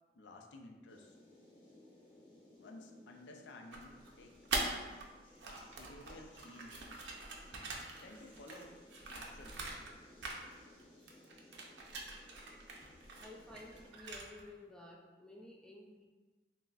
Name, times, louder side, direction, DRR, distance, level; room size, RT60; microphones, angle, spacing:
voice 1, 0.1-1.1 2.6-5.0 5.7-6.8 8.0-8.8 9.1-9.6, left 1 dB, 75° left, 3 dB, 0.4 m, -54 dB
sound 1, 0.9-13.9, left 1 dB, 30° left, 0.8 m, -61 dB
sound 2, 3.7-5.1 5.3-10.0 10.2-10.8 11.1-14.5, right 3 dB, 75° right, 0.5 m, -43 dB
voice 2, 13.2-16.1, left 2 dB, 5° left, -1 dB, 0.3 m, -53 dB
5.7 x 2.1 x 2.3 m, 1.2 s
head